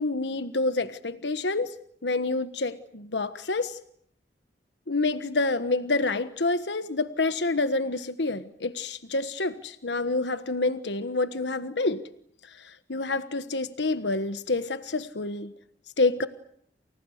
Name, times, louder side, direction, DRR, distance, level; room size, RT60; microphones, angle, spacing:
voice 1, 0.0-1.7 2.0-3.8 4.9-12.1 12.4-15.5 16.0-16.3, left 3 dB, 85° left, 11 dB, 1.3 m, -28 dB
29.5 x 28.0 x 6.6 m, 0.67 s
head